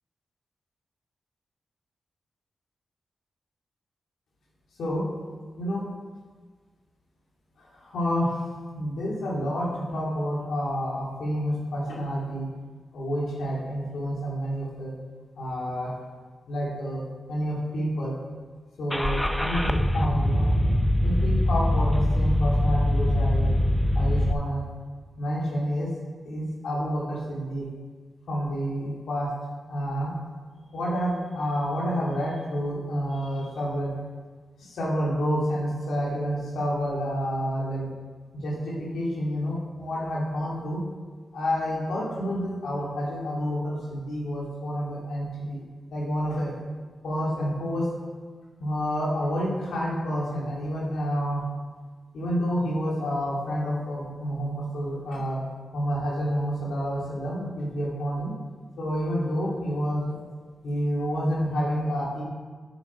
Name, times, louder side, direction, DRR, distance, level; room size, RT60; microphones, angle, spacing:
voice 1, 7.7-8.3 8.7-12.5 12.9-14.9 15.4-16.0 16.5-17.0 17.3-18.1 18.8-20.5 21.0-23.5 23.9-24.6 25.2-25.9 26.2-27.7 28.3-29.3 29.7-30.1 30.7-33.9 34.6-37.8 38.4-40.8 41.3-45.6 45.9-46.6 47.0-47.9 48.6-51.4 52.1-55.4 55.7-58.3 58.8-60.2 60.6-62.2, equal, 80° left, -5 dB, 2.5 m, -29 dB
Car / Engine starting, 18.9-24.3, left 1 dB, 5° left, 0.7 m, -23 dB
8.7 x 6.2 x 5.0 m, 1.5 s
cardioid pair, 50°, 0 cm